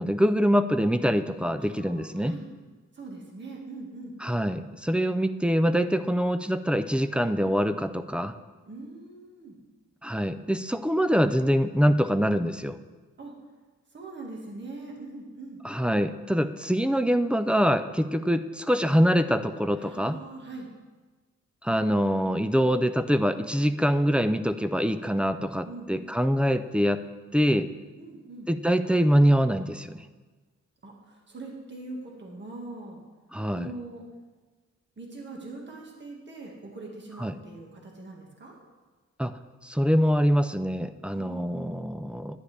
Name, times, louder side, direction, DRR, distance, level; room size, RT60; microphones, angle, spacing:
voice 1, 0.0-2.4 4.2-8.3 10.0-12.8 15.6-20.2 21.6-27.0 27.3-27.7 28.5-30.0 33.3-33.7 37.2-37.3 39.2-39.3 39.6-42.4, equal, 5° right, 11 dB, 0.3 m, -24 dB
voice 2, 1.6-2.5 2.9-4.1 8.7-9.6 13.2-13.3 13.9-15.6 19.8-20.7 23.5-23.6 25.6-25.9 28.0-28.5 30.8-33.0 33.5-34.1 35.0-38.6 41.1-41.8, right 2 dB, 40° right, -1 dB, 1.7 m, -42 dB
11.0 x 9.8 x 3.3 m, 1.3 s
wide cardioid pair, 120°, 29 cm